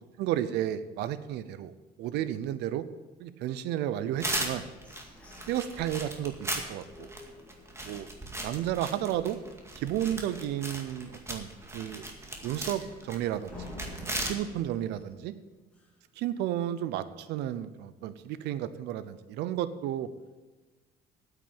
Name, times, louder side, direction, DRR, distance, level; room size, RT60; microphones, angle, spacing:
voice 1, 0.2-1.7 2.0-2.8 3.2-4.7 5.5-7.1 7.8-8.1 8.4-9.4 9.7-12.1 12.4-13.6 13.9-15.3 16.2-20.1, right 11 dB, 85° right, 14 dB, 0.7 m, -32 dB
sound 1, 4.2-14.3, right 1 dB, 15° right, 2.1 m, -38 dB
sound 2, 4.8-8.1 8.6-8.7 9.0-9.4 9.8-9.9 10.4-10.5 13.5-16.2, left 1 dB, 5° left, 3.1 m, -49 dB
9.0 x 8.3 x 8.6 m, 1.3 s
cardioid pair, 110°, 17 cm